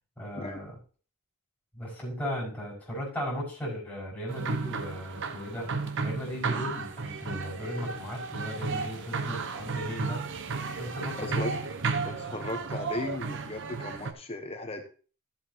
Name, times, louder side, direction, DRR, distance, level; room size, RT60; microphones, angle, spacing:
voice 1, 0.2-0.7 1.7-5.7 6.0-10.2 10.8-11.4, equal, 5° left, -5 dB, 5.7 m, -36 dB
sound 1, 4.3-14.1, right 4 dB, 55° right, 0.9 m, -34 dB
voice 2, 11.2-11.6 12.0-14.8, left 2 dB, 25° left, 6 dB, 1.0 m, -36 dB
13.5 x 8.0 x 2.9 m, 0.38 s
head